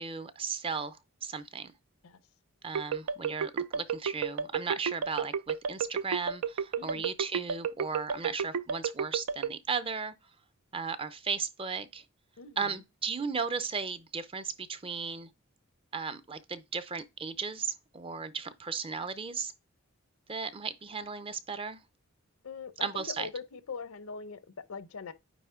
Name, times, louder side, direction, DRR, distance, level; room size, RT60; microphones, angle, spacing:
voice 1, 0.0-1.7 2.6-10.1 10.7-12.0 12.6-15.3 15.9-19.5 20.3-21.8 22.8-23.3, right 5 dB, 25° right, 0.5 m, -36 dB
sound 1, 2.7-9.5, right 6 dB, 90° right, 0.4 m, -31 dB
voice 2, 6.8-7.1 12.4-12.8 22.4-25.1, left 5 dB, 75° left, 0.6 m, -42 dB
9.2 x 3.1 x 3.6 m
head